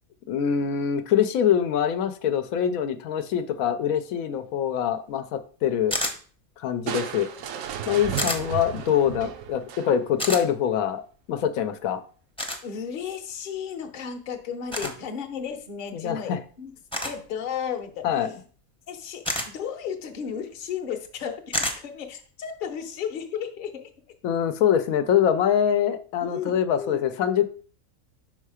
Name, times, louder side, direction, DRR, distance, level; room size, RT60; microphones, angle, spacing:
voice 1, 0.3-6.0 6.6-7.3 7.9-11.0 11.3-12.0 14.8-14.9 15.9-16.4 18.0-18.3 24.2-27.4, left 9 dB, 85° left, 10 dB, 1.0 m, -24 dB
sound 1, 5.9-6.2 8.2-8.4 10.2-10.4 12.4-12.6 14.7-14.9 16.9-17.2 19.2-19.5 21.5-21.8, left 1 dB, 5° left, 0.6 m, -28 dB
Crushing, 6.9-10.2, right 9 dB, 75° right, 1.0 m, -34 dB
voice 2, 12.6-16.7 17.0-18.1 18.9-23.9 26.2-27.0, left 7 dB, 45° left, 5 dB, 0.8 m, -34 dB
5.5 x 3.8 x 4.8 m, 0.42 s
omnidirectional pair, 1.4 m